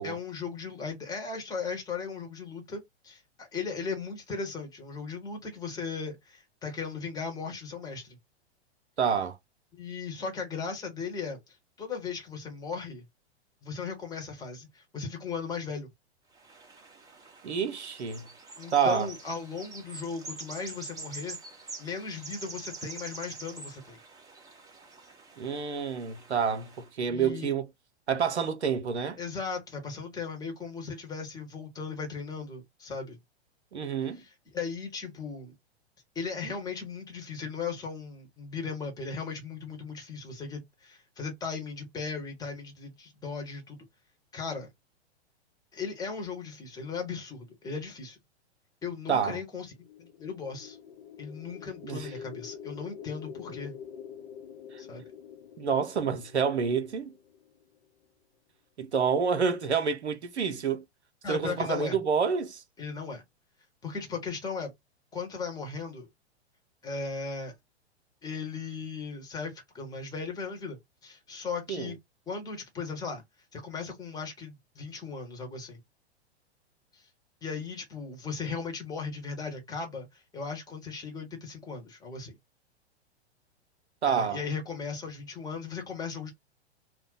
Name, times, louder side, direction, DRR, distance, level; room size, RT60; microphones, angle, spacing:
voice 1, 0.0-8.2 9.7-13.0 13.6-15.9 18.6-21.4 21.8-24.0 27.1-27.5 29.2-33.2 34.1-35.5 36.1-43.8 44.3-44.7 45.7-48.2 48.8-49.7 50.0-50.8 51.2-53.7 54.8-55.0 61.2-62.0 62.8-63.2 63.8-64.7 65.1-66.1 66.8-67.5 68.2-70.8 71.0-72.0 72.3-73.2 73.5-75.8 76.9-77.1 77.4-82.4 84.0-86.3, left 5 dB, 10° left, 1.0 m, -37 dB
voice 2, 9.0-9.4 17.4-18.3 18.7-19.1 25.4-27.7 28.1-29.2 33.7-34.2 49.1-49.4 51.8-52.1 54.7-54.8 55.6-57.1 58.8-60.8 61.3-62.6 71.7-71.9 84.0-84.4, right 6 dB, 80° right, 0.7 m, -28 dB
sound 1, 16.3-26.9, right 3 dB, 10° right, 0.8 m, -46 dB
sound 2, 49.7-57.8, left 8 dB, 50° left, 0.7 m, -46 dB
2.5 x 2.1 x 3.8 m
figure-of-eight pair, 100°, 33 cm